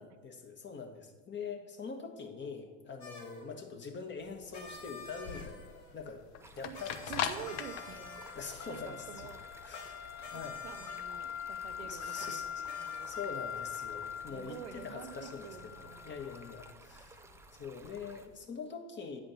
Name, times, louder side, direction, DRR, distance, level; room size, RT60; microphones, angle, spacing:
voice 1, 0.0-6.2 6.5-7.1 8.3-9.3 9.6-10.0 10.3-10.6 11.8-17.2 17.6-19.2, left 5 dB, 35° left, 4 dB, 1.4 m, -44 dB
sound 1, 3.0-3.5 4.5-5.9 6.7-8.8 9.7-9.9 10.2-11.0 12.2-12.3 12.6-13.3, left 2 dB, 85° left, 2.2 m, -50 dB
sound 2, 4.2-18.3, left 9 dB, 60° left, 0.7 m, -42 dB
Stream, 6.4-18.3, right 2 dB, 10° right, 0.6 m, -56 dB
voice 2, 7.0-8.3 8.7-9.4 10.3-13.1 14.3-16.2, right 9 dB, 85° right, 10 dB, 0.6 m, -48 dB
8.8 x 5.0 x 6.3 m, 1.4 s
hypercardioid pair, 85°, 32 cm